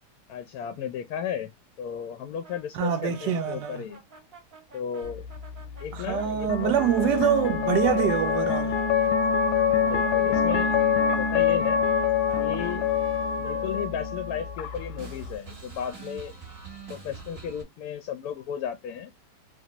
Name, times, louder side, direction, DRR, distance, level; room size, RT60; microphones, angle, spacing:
voice 1, 0.3-1.5 1.8-4.0 4.7-5.2 5.8-6.7 9.7-11.8 12.4-12.8 13.4-16.3 16.9-19.1, left 9 dB, 75° left, 0.9 m, -34 dB
sound 1, 2.4-7.6 8.1-14.4 14.6-17.6, right 4 dB, 40° right, 1.0 m, -47 dB
voice 2, 2.7-3.8 5.9-8.8, right 9 dB, 75° right, 1.1 m, -25 dB
sound 2, 5.0-15.4, left 6 dB, 90° left, 1.3 m, -26 dB
3.1 x 2.1 x 2.8 m
omnidirectional pair, 2.0 m